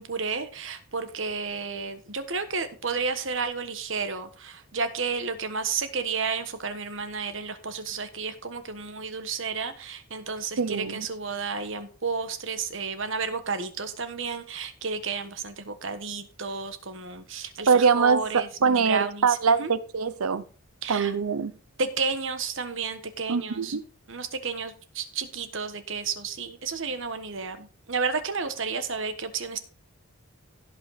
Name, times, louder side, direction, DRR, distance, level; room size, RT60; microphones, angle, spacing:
voice 1, 0.0-19.3 19.6-19.7 20.8-21.1 21.8-23.7 24.1-29.6, right 5 dB, 60° right, 1.3 m, -32 dB
voice 2, 10.6-11.1 17.7-20.4 20.9-21.5 23.3-23.8, right 5 dB, 85° right, 0.7 m, -23 dB
16.5 x 5.6 x 4.1 m
head